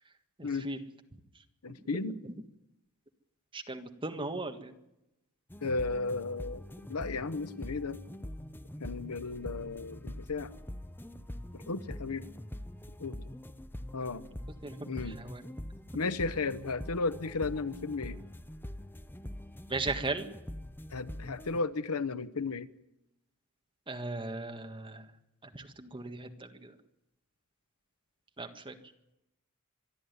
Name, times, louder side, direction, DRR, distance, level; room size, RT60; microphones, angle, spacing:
voice 1, 0.4-0.8 3.5-4.7 14.6-14.8 15.1-15.4 19.7-20.3 23.9-25.0 25.5-26.7 28.4-28.8, right 3 dB, 25° right, 6 dB, 1.6 m, -37 dB
voice 2, 1.6-2.2 5.6-8.0 8.8-10.5 11.5-12.3 13.0-13.2 13.9-14.3 14.9-15.2 15.9-18.2 20.9-22.7, left 3 dB, 80° left, 14 dB, 0.9 m, -34 dB
sound 1, 5.5-21.6, left 1 dB, 10° left, 0.7 m, -44 dB
25.0 x 11.5 x 9.5 m, 0.88 s
head